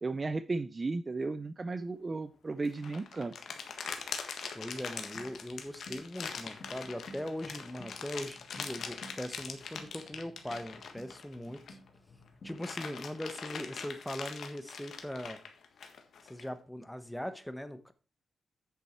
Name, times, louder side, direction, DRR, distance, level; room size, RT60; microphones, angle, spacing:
voice 1, 0.0-3.3, right 3 dB, 30° right, 13 dB, 0.5 m, -34 dB
sound 1, 2.6-11.9 12.3-16.4, left 6 dB, 70° left, 1.5 m, -42 dB
voice 2, 4.5-11.8 12.4-15.4 16.3-17.9, equal, 5° left, 11 dB, 1.0 m, -40 dB
sound 2, 5.2-12.9, left 1 dB, 55° left, 2.4 m, -54 dB
8.4 x 6.9 x 4.4 m, 0.33 s
cardioid pair, 100°, 0 cm